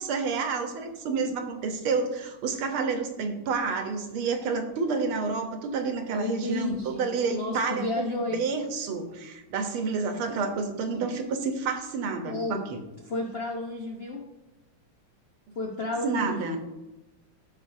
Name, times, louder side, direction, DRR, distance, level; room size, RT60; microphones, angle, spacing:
voice 1, 0.0-12.8 16.0-16.6, right 4 dB, 75° right, 6 dB, 1.8 m, -29 dB
voice 2, 6.1-8.5 12.3-12.6 13.1-14.2 15.5-16.6, left 2 dB, 55° left, -1 dB, 0.7 m, -32 dB
14.0 x 5.5 x 2.6 m, 1.0 s
omnidirectional pair, 2.4 m